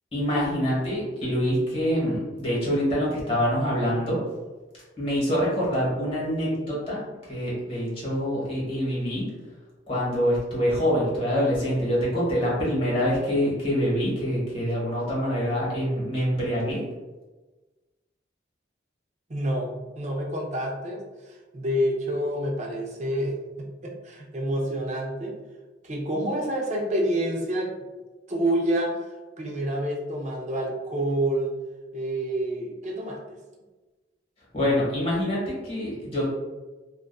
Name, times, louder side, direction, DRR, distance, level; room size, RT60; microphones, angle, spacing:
voice 1, 0.1-4.2 5.0-9.3 9.9-16.8 34.5-36.3, equal, 35° left, -6 dB, 1.0 m, -25 dB
voice 2, 19.3-25.4 25.8-27.7 28.3-29.1 29.4-31.6 31.9-33.4, right 1 dB, 40° right, -1 dB, 0.5 m, -28 dB
2.5 x 2.3 x 2.2 m, 1.2 s
head